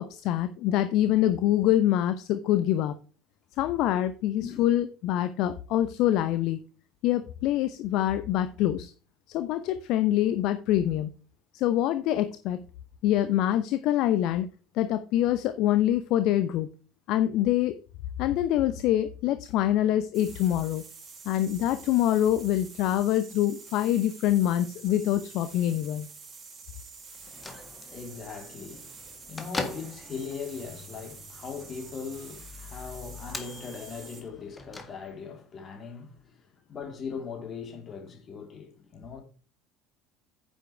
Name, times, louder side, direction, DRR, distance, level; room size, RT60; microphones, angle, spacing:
voice 1, 0.0-2.9 3.6-6.6 7.0-8.9 9.3-11.1 11.5-12.6 13.0-14.5 14.7-16.7 17.1-17.7 18.2-20.8 21.3-26.1, left 12 dB, 55° left, 0.7 m, -25 dB
sound 1, 20.1-34.3, right 4 dB, 35° right, 4.5 m, -47 dB
Bell / Microwave oven, 27.1-35.4, left 3 dB, 20° left, 2.0 m, -42 dB
voice 2, 27.3-39.2, left 6 dB, 35° left, 3.3 m, -40 dB
10.0 x 8.1 x 3.3 m
figure-of-eight pair, 65°, 0 cm